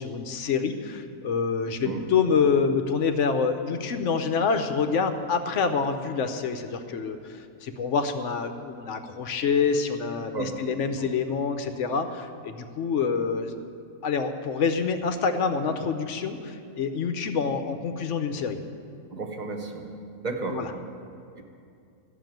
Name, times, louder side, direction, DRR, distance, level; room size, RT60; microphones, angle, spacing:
voice 1, 0.0-13.5 14.0-18.6 20.5-20.7, left 5 dB, 60° left, 8 dB, 0.9 m, -26 dB
voice 2, 19.1-19.8 20.2-20.6 21.3-21.4, right 3 dB, 30° right, 3 dB, 1.1 m, -32 dB
13.0 x 6.7 x 9.1 m, 2.4 s
omnidirectional pair, 1.7 m